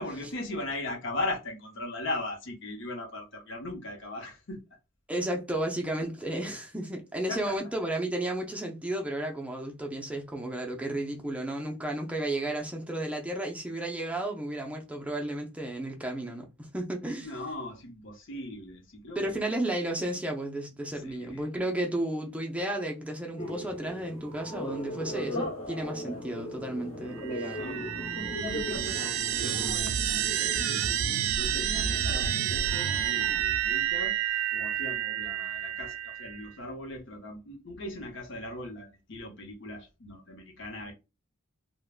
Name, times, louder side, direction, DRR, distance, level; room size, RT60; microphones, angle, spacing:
voice 1, 0.0-4.6 7.3-7.6 17.2-19.4 20.9-21.5 27.6-30.9 31.2-34.2 34.5-40.9, left 2 dB, 65° left, 0.8 m, -38 dB
voice 2, 5.1-17.3 19.2-27.6, right 1 dB, 5° right, 0.5 m, -33 dB
sound 1, 23.4-33.4, equal, 35° left, 1.3 m, -38 dB
sound 2, 27.2-36.5, right 10 dB, 90° right, 0.3 m, -30 dB
3.4 x 2.2 x 2.4 m
head